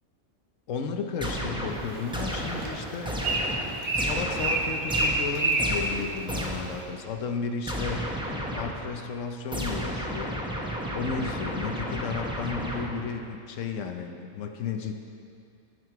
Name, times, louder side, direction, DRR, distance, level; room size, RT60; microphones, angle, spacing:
voice 1, 0.7-3.4 3.9-8.0 8.5-10.4 10.9-14.9, left 5 dB, 75° left, 5 dB, 1.1 m, -33 dB
sound 1, 1.2-6.8 7.7-9.0 9.5-13.2, equal, 5° right, 0.9 m, -33 dB
Bird, 1.7-6.8, right 2 dB, 90° right, 1.5 m, -30 dB
14.5 x 6.3 x 4.7 m, 2.4 s
omnidirectional pair, 1.4 m